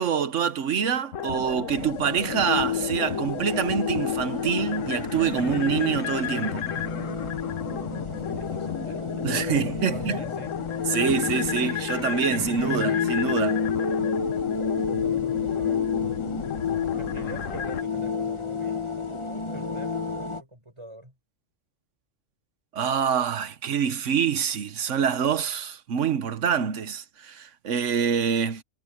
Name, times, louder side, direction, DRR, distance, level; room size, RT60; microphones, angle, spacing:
voice 1, 0.0-6.7 9.2-10.2 10.9-13.6 22.7-28.6, right 7 dB, 65° right, 1.3 m, -26 dB
sound 1, 1.1-17.8, left 9 dB, 75° left, 1.3 m, -34 dB
sound 2, 1.7-20.4, left 6 dB, 25° left, 1.3 m, -30 dB
voice 2, 7.9-10.6 14.9-18.9 19.2-20.0 20.4-21.2, right 1 dB, 20° right, 6.7 m, -44 dB
omnidirectional pair, 1.4 m